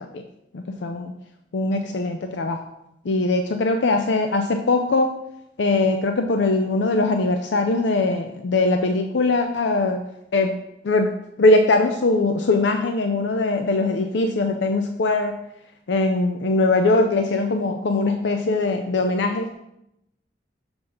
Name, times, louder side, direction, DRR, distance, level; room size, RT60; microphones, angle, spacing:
voice 1, 0.5-1.1 1.5-2.6 3.1-5.1 5.6-10.0 10.3-10.6 10.8-11.1 11.4-15.4 15.9-19.5, left 2 dB, 75° left, 5 dB, 0.5 m, -21 dB
6.7 x 4.0 x 5.6 m, 0.81 s
head